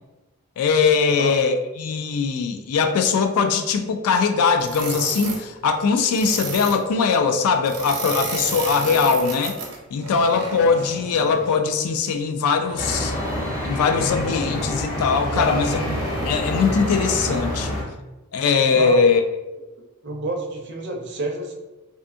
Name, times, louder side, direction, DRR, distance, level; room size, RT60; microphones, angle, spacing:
voice 1, 0.6-9.6 9.9-13.1 13.6-15.8 16.2-17.8 18.3-19.2, left 5 dB, 80° left, 6 dB, 0.3 m, -21 dB
sound 1, 4.6-5.4 6.1-6.8 7.6-11.6 12.6-13.6 14.5-14.8 15.3-17.7, right 2 dB, 90° right, 0.7 m, -32 dB
sound 2, 12.8-17.8, equal, 15° left, 0.7 m, -27 dB
voice 2, 18.7-19.2 20.0-21.5, right 2 dB, 50° right, 2 dB, 0.4 m, -29 dB
2.6 x 2.4 x 2.5 m, 1.1 s
head